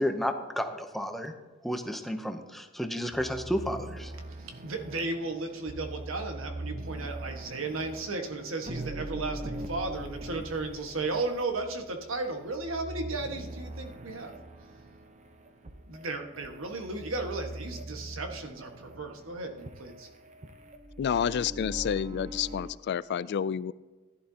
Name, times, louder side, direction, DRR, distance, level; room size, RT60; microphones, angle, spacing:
voice 1, 0.0-1.3 1.6-4.1, equal, ahead, 6 dB, 0.7 m, -32 dB
sound 1, 3.1-22.7, right 1 dB, 35° right, 0.8 m, -42 dB
voice 2, 4.4-14.3 15.9-20.1, right 3 dB, 75° right, 4 dB, 1.5 m, -35 dB
voice 3, 21.0-23.7, left 8 dB, 55° left, 19 dB, 0.3 m, -29 dB
15.5 x 11.0 x 2.8 m, 1.3 s
head